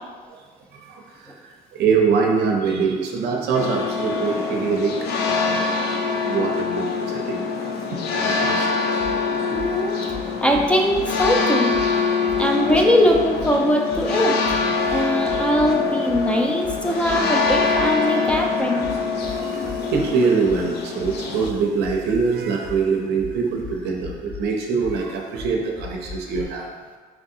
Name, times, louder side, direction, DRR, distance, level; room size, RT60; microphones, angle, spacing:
voice 1, 0.7-5.7 6.2-8.7 9.6-9.8 19.3-26.7, right 5 dB, 75° right, 1 dB, 0.6 m, -24 dB
sound 1, 3.5-21.5, left 4 dB, 75° left, 0.5 m, -24 dB
sound 2, 9.0-9.2 9.5-9.7 10.1-11.4 11.7-11.9 12.3-13.5 13.9-14.1 14.4-15.7 16.1-20.1 20.4-26.4, left 4 dB, 10° right, 1.3 m, -37 dB
voice 2, 9.5-10.0 10.4-11.8 12.4-14.4 14.9-18.9, equal, 5° left, 1 dB, 0.5 m, -21 dB
4.7 x 3.7 x 2.7 m, 1.5 s
cardioid pair, 110°, 17 cm